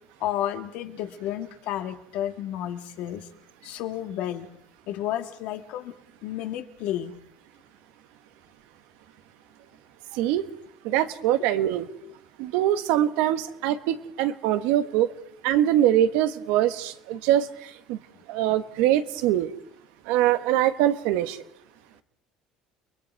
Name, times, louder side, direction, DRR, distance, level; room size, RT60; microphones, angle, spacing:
voice 1, 0.2-3.3 3.6-4.5 4.9-6.0 6.2-7.1, left 11 dB, 70° left, 7 dB, 1.8 m, -31 dB
voice 2, 10.1-10.5 10.8-11.9 12.4-15.1 15.4-17.5 17.9-18.0 18.3-19.5 20.1-21.4, right 12 dB, 85° right, 11 dB, 1.3 m, -23 dB
30.0 x 21.0 x 4.6 m, 0.75 s
cardioid pair, 125°, 2 cm